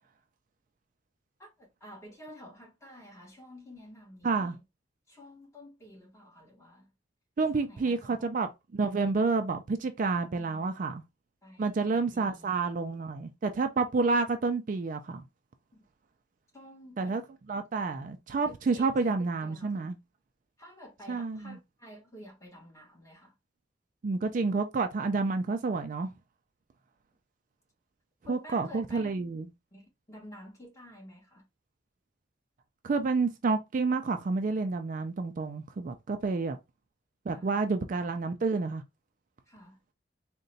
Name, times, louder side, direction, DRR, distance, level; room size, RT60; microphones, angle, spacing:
voice 1, 1.4-4.6 5.1-6.9 7.5-8.3 10.3-10.6 11.4-12.5 16.5-17.4 18.4-19.8 20.6-23.3 28.2-29.1 29.7-31.5 37.3-37.6 39.5-39.8, equal, 15° left, 1.4 m, -50 dB
voice 2, 4.2-4.6 7.4-11.0 11.6-15.2 17.0-17.2 17.5-19.9 21.1-21.6 24.0-26.1 28.3-29.4 32.8-36.6 37.3-38.8, right 4 dB, 45° right, 0.3 m, -29 dB
3.8 x 2.2 x 3.9 m
head